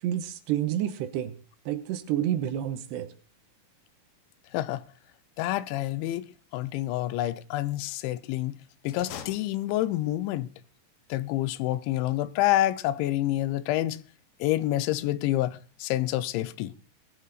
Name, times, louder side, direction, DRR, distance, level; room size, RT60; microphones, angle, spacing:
voice 1, 0.0-1.4 1.7-3.1, right 11 dB, 80° right, 2.9 m, -29 dB
voice 2, 4.5-4.8 5.4-6.3 6.5-8.6 8.8-10.5 11.1-14.0 14.4-16.7, left 15 dB, 90° left, 3.1 m, -28 dB
sound 1, 8.8-10.2, left 9 dB, 70° left, 3.0 m, -44 dB
20.5 x 8.0 x 4.0 m
omnidirectional pair, 5.1 m